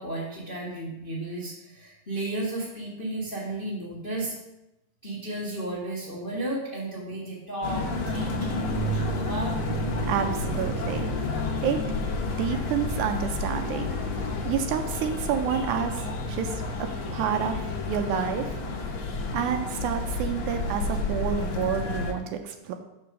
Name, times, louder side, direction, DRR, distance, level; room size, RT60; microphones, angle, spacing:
voice 1, 0.0-4.3 5.0-9.6, right 1 dB, 40° left, -6 dB, 0.7 m, -33 dB
sound 1, 7.6-22.1, left 2 dB, 65° left, 1.3 m, -30 dB
voice 2, 10.1-11.1 11.6-11.8 12.4-13.9 14.4-16.6 17.1-18.6 19.3-22.7, right 8 dB, 80° right, 6 dB, 1.9 m, -29 dB
5.9 x 4.6 x 6.2 m, 0.93 s
omnidirectional pair, 3.6 m